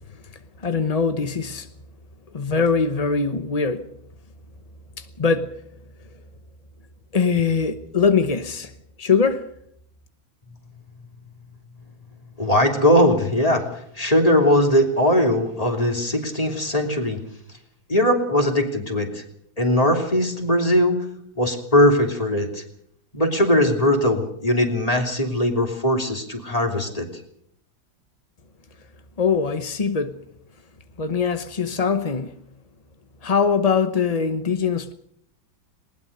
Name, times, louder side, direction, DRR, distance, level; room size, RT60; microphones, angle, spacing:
voice 1, 0.6-1.7 2.3-3.8 5.0-5.6 7.1-8.7 9.0-9.5 29.2-30.2 31.0-32.3 33.2-34.9, left 5 dB, 40° left, 0.5 m, -22 dB
voice 2, 12.4-17.2 17.9-19.2 19.6-21.0 21.4-22.6 23.1-27.1, left 1 dB, 20° left, 3.1 m, -20 dB
20.0 x 20.0 x 6.7 m
omnidirectional pair, 2.1 m